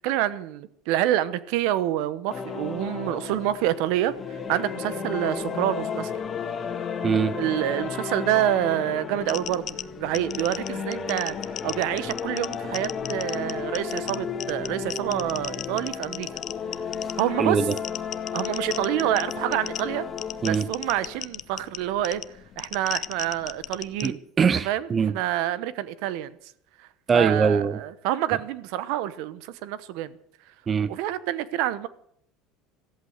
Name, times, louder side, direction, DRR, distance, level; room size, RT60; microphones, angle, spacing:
voice 1, 0.0-6.1 7.3-9.7 10.0-11.3 11.6-16.3 17.2-17.7 18.3-20.0 20.5-22.2 22.6-24.2 24.6-26.3 26.8-30.1 30.9-31.9, right 13 dB, 70° right, 1.0 m, -27 dB
sound 1, 2.3-21.3, left 6 dB, 25° left, 2.1 m, -33 dB
voice 2, 7.0-7.3 17.4-17.8 20.4-20.7 24.0-25.1 27.1-27.8 30.7-30.9, right 6 dB, 25° right, 0.7 m, -22 dB
sound 2, 9.2-24.1, left 11 dB, 40° left, 0.6 m, -37 dB
14.0 x 13.5 x 6.5 m
supercardioid pair, 130°, 0 cm